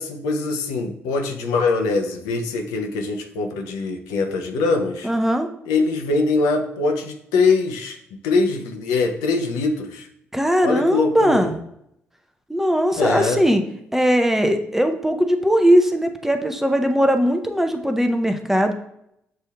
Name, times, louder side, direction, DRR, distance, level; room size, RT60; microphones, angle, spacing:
voice 1, 0.0-5.1 5.7-8.0 8.2-10.1 10.6-11.5 13.0-13.4, left 3 dB, 70° left, 3 dB, 0.5 m, -22 dB
voice 2, 5.0-5.5 10.3-11.5 12.5-13.6 13.9-18.7, equal, 5° right, 6 dB, 0.6 m, -19 dB
7.4 x 2.7 x 2.2 m, 0.76 s
figure-of-eight pair, 45°, 7 cm